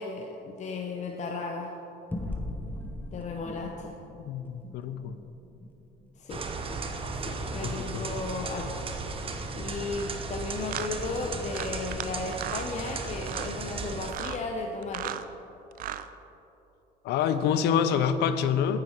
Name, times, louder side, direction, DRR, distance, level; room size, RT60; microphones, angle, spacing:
voice 1, 0.0-1.8 3.1-4.0 6.2-6.4 7.1-8.9 9.3-15.2 17.4-17.6, left 3 dB, 45° left, 1 dB, 0.8 m, -35 dB
sound 1, 2.1-6.9, left 1 dB, 10° left, 1.0 m, -40 dB
voice 2, 4.3-5.2 7.6-8.0 17.0-18.8, left 8 dB, 80° left, 11 dB, 0.6 m, -26 dB
sound 2, 6.3-14.1, right 3 dB, 35° right, 0.9 m, -35 dB
sound 3, 9.9-10.1 10.7-10.9 11.5-12.1 12.3-12.7 13.2-13.5 14.0-14.4 14.8-15.2 15.7-16.1, right 11 dB, 55° right, 0.5 m, -36 dB
9.0 x 8.4 x 4.6 m, 2.9 s
cardioid pair, 110°, 17 cm